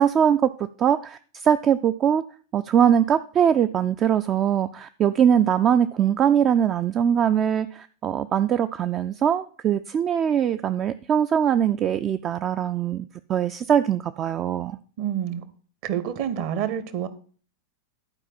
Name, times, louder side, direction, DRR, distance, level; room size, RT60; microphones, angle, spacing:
voice 1, 0.0-2.2 2.5-14.8, right 9 dB, 30° right, 11 dB, 0.4 m, -22 dB
voice 2, 15.0-15.4 15.8-17.1, right 9 dB, 45° right, 13 dB, 0.9 m, -28 dB
11.5 x 4.8 x 5.8 m, 0.42 s
figure-of-eight pair, 90°, 0 cm